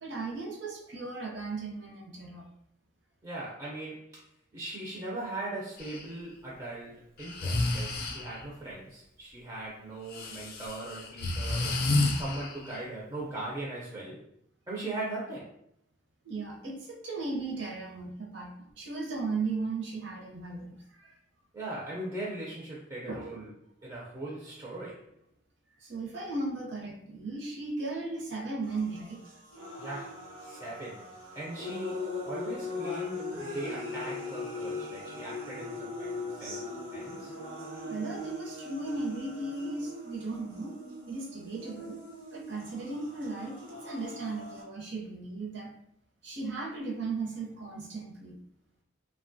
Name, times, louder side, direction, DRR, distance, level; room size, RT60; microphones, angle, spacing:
voice 1, 0.0-2.4 16.2-18.5 18.8-21.1 23.1-23.2 25.8-29.2 32.8-33.4 37.8-40.7 41.1-42.0 42.3-45.7 46.2-48.4, right 3 dB, 60° right, -2 dB, 0.7 m, -36 dB
voice 2, 3.2-4.2 4.5-11.8 12.1-14.2 14.7-15.5 21.5-23.5 23.8-25.1 29.8-31.1 31.3-36.6 36.9-37.3, right 2 dB, 20° right, -6 dB, 0.4 m, -40 dB
Breathing, 5.8-6.0 7.2-8.4 10.1-12.8, left 2 dB, 50° left, 0.4 m, -31 dB
sound 1, 28.6-44.6, left 3 dB, 80° right, 1.0 m, -40 dB
3.0 x 2.2 x 2.5 m, 0.73 s
head